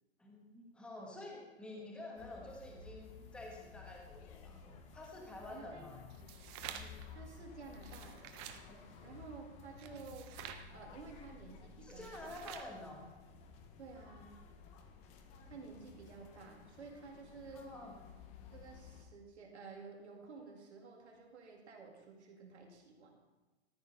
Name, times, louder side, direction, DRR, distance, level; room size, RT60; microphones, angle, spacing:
voice 1, 0.2-6.0 6.7-7.1 8.5-9.2 11.8-13.0 17.5-18.0, left 2 dB, 5° left, -1 dB, 1.1 m, -50 dB
sound 1, 2.2-19.1, left 5 dB, 20° left, 0.6 m, -55 dB
voice 2, 5.4-5.8 6.2-6.3 7.1-8.4 9.0-10.3 10.7-12.4 13.8-14.4 15.5-17.7 18.5-23.2, right 4 dB, 90° right, 0 dB, 2.3 m, -52 dB
sound 2, 6.1-7.1 7.7-8.6 9.8-10.7 11.9-12.8, right 9 dB, 25° right, 0.5 m, -49 dB
13.0 x 4.6 x 5.3 m, 1.2 s
hypercardioid pair, 145°, 33 cm